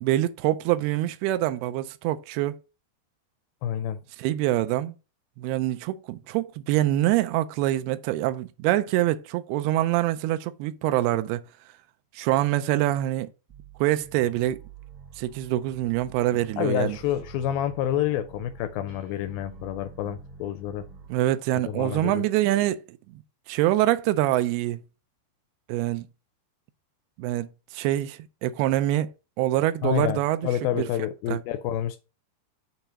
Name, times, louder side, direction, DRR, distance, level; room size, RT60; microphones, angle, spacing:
voice 1, 0.0-2.6 4.2-4.9 5.4-11.4 12.1-13.3 13.8-14.6 15.2-17.0 21.1-23.0 23.5-24.8 25.7-26.1 27.2-29.1 29.4-30.9 31.3-31.4, right 14 dB, 85° right, 2.5 m, -25 dB
voice 2, 3.6-4.0 16.6-20.9 21.7-22.2 29.8-32.0, left 10 dB, 85° left, 2.1 m, -28 dB
sound 1, 13.5-21.2, right 4 dB, 15° right, 1.3 m, -47 dB
6.8 x 3.0 x 5.7 m
omnidirectional pair, 4.6 m